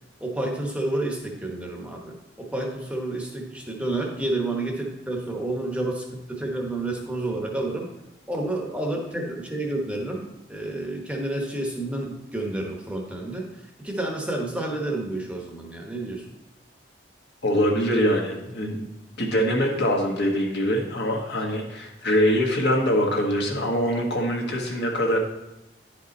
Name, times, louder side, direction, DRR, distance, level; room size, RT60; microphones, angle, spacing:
voice 1, 0.2-7.9 8.3-13.5 13.8-16.2, right 2 dB, 5° right, 0 dB, 1.0 m, -30 dB
voice 2, 17.4-18.9 19.2-25.2, equal, 60° left, 0 dB, 1.5 m, -23 dB
10.0 x 5.2 x 4.1 m, 0.96 s
head